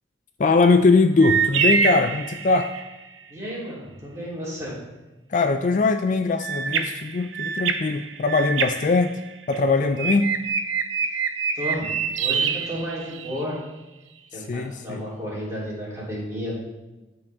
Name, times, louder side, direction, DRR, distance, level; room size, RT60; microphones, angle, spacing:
voice 1, 0.4-2.7 5.3-9.1 9.5-10.3 14.3-15.0, left 3 dB, 40° left, 7 dB, 0.3 m, -21 dB
sound 1, 1.2-2.9 6.4-9.6 10.0-13.4, right 6 dB, 85° right, 0.7 m, -26 dB
voice 2, 3.3-4.7 11.0-11.2 11.5-13.6 14.3-16.5, equal, 15° right, -8 dB, 3.3 m, -32 dB
13.5 x 4.9 x 3.5 m, 1.1 s
head